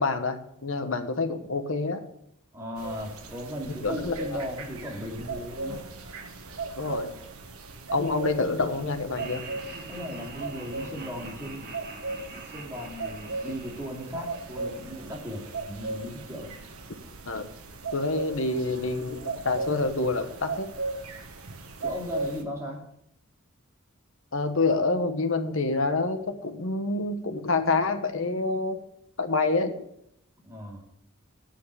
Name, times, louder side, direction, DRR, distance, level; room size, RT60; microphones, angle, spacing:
voice 1, 0.0-2.0 3.8-4.2 6.8-7.1 7.9-9.4 17.3-17.5 17.9-20.7 24.3-28.8 29.2-29.7, left 3 dB, 65° left, 7 dB, 1.2 m, -27 dB
voice 2, 2.5-5.8 9.9-11.7 12.5-16.5 21.8-22.9 30.4-30.8, equal, 15° right, -2 dB, 2.5 m, -37 dB
sound 1, 2.8-22.4, right 3 dB, 85° right, 1.3 m, -37 dB
Laughter, 9.1-15.3, right 3 dB, 45° right, 1.8 m, -44 dB
9.5 x 6.4 x 8.2 m, 0.75 s
head